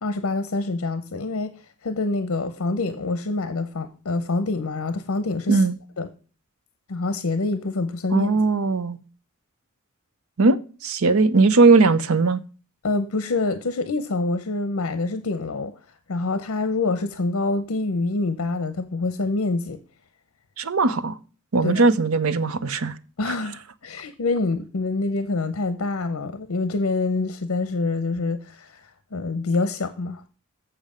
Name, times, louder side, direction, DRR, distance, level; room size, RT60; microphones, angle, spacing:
voice 1, 0.0-1.5 1.8-5.6 6.0-6.1 6.9-8.3 12.8-15.8 16.1-19.8 21.6-21.8 23.2-30.2, left 3 dB, 75° left, 0.7 m, -26 dB
voice 2, 8.1-9.0 10.4-12.4 20.6-21.2 21.5-23.0 23.3-23.4, right 3 dB, 75° right, 0.7 m, -19 dB
7.4 x 7.0 x 5.0 m
head